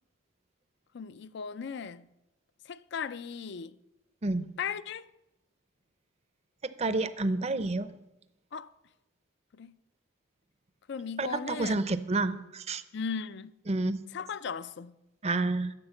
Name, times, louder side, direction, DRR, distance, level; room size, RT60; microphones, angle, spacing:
voice 1, 0.9-2.1 2.7-3.8 4.6-5.1 8.5-8.7 9.5-9.7 10.9-11.8 12.9-13.5 14.1-14.9, left 6 dB, 60° left, 0.4 m, -37 dB
voice 2, 6.8-7.9 11.2-12.8 13.7-14.0 15.2-15.7, right 2 dB, 35° right, 0.6 m, -29 dB
10.5 x 7.7 x 7.0 m
head